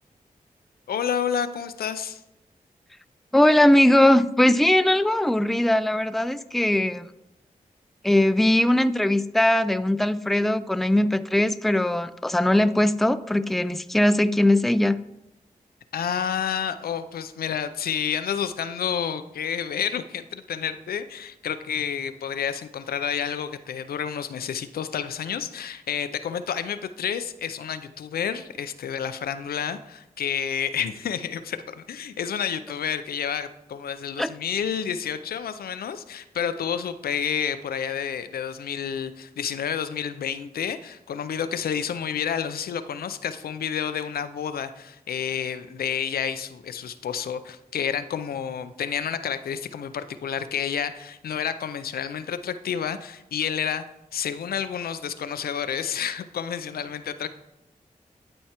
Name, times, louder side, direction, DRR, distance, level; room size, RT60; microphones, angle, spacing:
voice 1, 0.9-2.2 15.9-53.8 54.1-57.3, left 8 dB, 85° left, 11 dB, 0.4 m, -30 dB
voice 2, 3.3-7.1 8.0-15.0 34.2-34.3, left 1 dB, ahead, 12 dB, 0.4 m, -20 dB
11.5 x 4.5 x 2.9 m, 0.89 s
cardioid pair, 45°, 15 cm